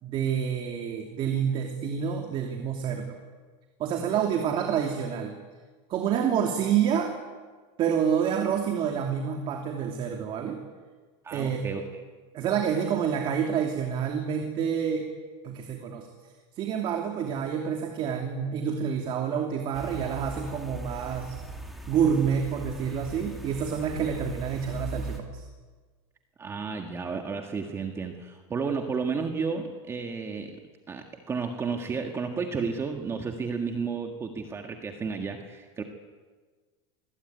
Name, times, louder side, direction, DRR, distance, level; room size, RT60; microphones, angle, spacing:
voice 1, 0.0-3.2 3.8-5.3 5.9-7.1 7.8-10.6 11.3-11.6 12.3-15.1 15.4-16.1 16.6-21.4 21.9-25.4, right 7 dB, 35° right, 3 dB, 2.9 m, -28 dB
voice 2, 11.2-12.0 26.4-30.6 30.9-35.8, right 5 dB, 15° right, 4 dB, 1.8 m, -32 dB
sound 1, 19.7-25.2, right 1 dB, ahead, 3.2 m, -40 dB
27.0 x 20.5 x 9.5 m, 1.4 s
supercardioid pair, 160°, 15 cm